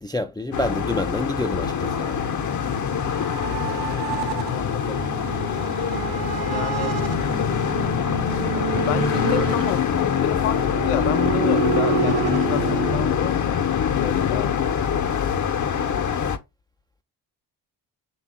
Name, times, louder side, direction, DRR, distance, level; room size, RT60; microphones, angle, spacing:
voice 1, 0.0-2.2, left 2 dB, 10° left, 0.4 m, -28 dB
sound 1, 0.5-16.4, left 8 dB, 35° left, 0.8 m, -24 dB
sound 2, 1.8-12.5, right 9 dB, 65° right, 0.8 m, -31 dB
voice 2, 3.7-5.0 6.5-7.0 8.8-14.5, left 12 dB, 80° left, 0.7 m, -31 dB
Bowed string instrument, 9.4-13.3, right 11 dB, 30° right, 0.7 m, -32 dB
5.5 x 2.4 x 3.6 m
hypercardioid pair, 45°, 49 cm